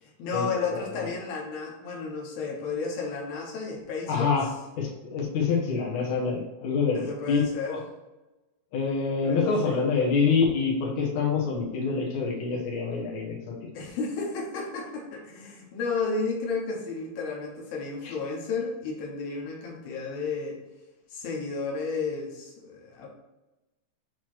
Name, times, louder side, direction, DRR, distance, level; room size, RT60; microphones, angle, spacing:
voice 1, 0.0-4.3 6.9-7.8 9.2-9.8 13.7-20.6 21.1-23.1, left 4 dB, 65° left, -2 dB, 2.4 m, -32 dB
voice 2, 4.1-4.5 4.8-7.4 7.7-7.8 8.7-13.5 18.0-18.1, left 5 dB, 90° left, -3 dB, 1.5 m, -26 dB
8.2 x 3.2 x 4.6 m, 1.1 s
omnidirectional pair, 5.5 m